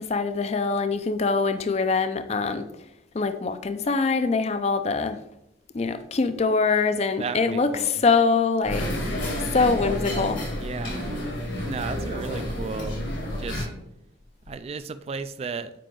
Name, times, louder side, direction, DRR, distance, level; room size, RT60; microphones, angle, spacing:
voice 1, 0.0-2.7 3.1-5.2 5.7-9.2 9.5-10.4, left 4 dB, 35° left, 10 dB, 0.4 m, -24 dB
voice 2, 7.2-7.9 10.6-11.1 11.6-13.7 14.5-15.7, right 4 dB, 35° right, 11 dB, 0.3 m, -34 dB
sound 1, 8.6-13.6, left 1 dB, 75° left, 2.0 m, -30 dB
7.5 x 5.0 x 3.7 m, 0.83 s
head